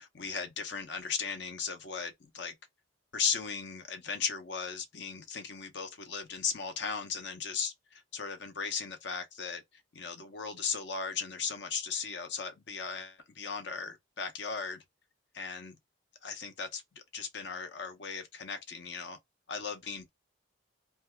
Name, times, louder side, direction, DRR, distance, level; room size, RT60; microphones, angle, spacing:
voice 1, 0.0-2.5 3.1-9.6 9.9-14.8 15.3-15.8 16.2-19.2 19.5-20.1, left 6 dB, 60° left, 0.6 m, -37 dB
2.6 x 2.2 x 3.3 m
head